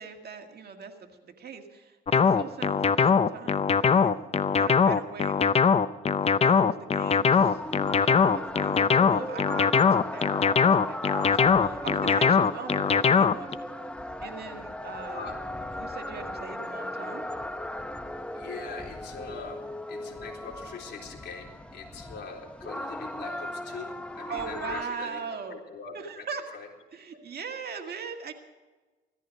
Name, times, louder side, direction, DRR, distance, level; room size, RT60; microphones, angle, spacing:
voice 1, 0.0-5.5 6.2-7.6 7.9-13.7 14.2-15.4 15.8-17.2 24.3-25.6 25.9-26.5 26.9-28.3, right 5 dB, 55° right, 4 dB, 2.0 m, -40 dB
sound 1, 2.1-13.5, left 6 dB, 30° left, 0.6 m, -21 dB
sound 2, 7.3-24.8, left 1 dB, 5° left, 0.9 m, -37 dB
voice 2, 18.3-26.7, left 5 dB, 60° left, 0 dB, 4.0 m, -42 dB
16.5 x 14.0 x 5.2 m, 1.2 s
cardioid pair, 90°, 20 cm